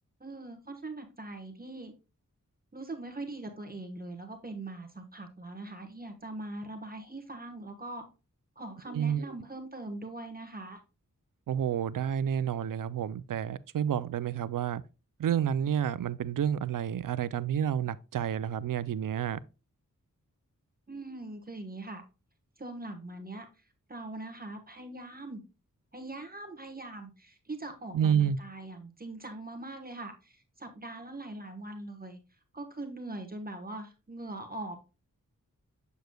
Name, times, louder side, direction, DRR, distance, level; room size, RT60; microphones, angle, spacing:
voice 1, 0.2-1.9 2.7-8.0 8.6-10.8 20.9-22.0 22.6-23.5 23.9-25.4 25.9-32.2 32.5-34.8, right 2 dB, 30° right, 1.1 m, -41 dB
voice 2, 8.9-9.2 11.5-14.8 15.2-19.4 27.9-28.4, right 9 dB, 80° right, 0.5 m, -29 dB
7.9 x 6.9 x 2.2 m
wide cardioid pair, 105°, 32 cm